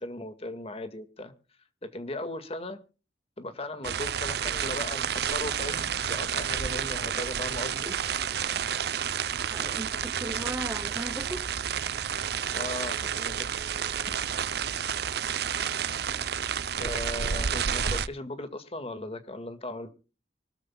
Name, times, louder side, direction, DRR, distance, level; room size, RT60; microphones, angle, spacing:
voice 1, 0.0-1.3 1.8-2.8 3.4-8.0 12.5-13.5 13.8-14.1 16.8-19.9, left 1 dB, 35° left, 1.9 m, -37 dB
sound 1, 3.8-18.1, right 8 dB, 60° right, 0.7 m, -30 dB
Wild animals, 5.5-9.6, equal, 85° left, 3.9 m, -54 dB
voice 2, 9.5-11.5 15.5-15.7, right 1 dB, 15° right, 0.7 m, -37 dB
24.5 x 13.0 x 2.3 m
head